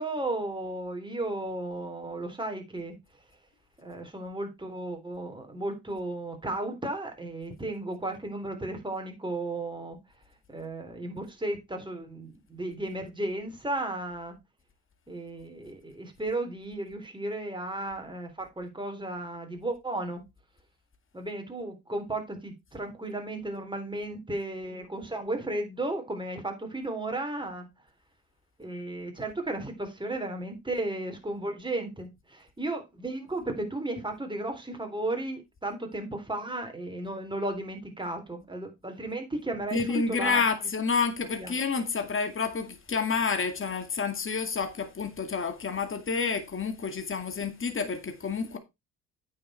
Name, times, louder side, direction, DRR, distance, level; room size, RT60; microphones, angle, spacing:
voice 1, 0.0-3.0 3.8-10.0 10.5-14.4 15.1-20.2 21.1-27.7 28.6-40.4 41.4-41.5, right 2 dB, 15° right, 3.7 m, -34 dB
voice 2, 39.7-48.6, left 5 dB, 35° left, 2.2 m, -29 dB
8.8 x 6.8 x 4.4 m
cardioid pair, 80°, 36 cm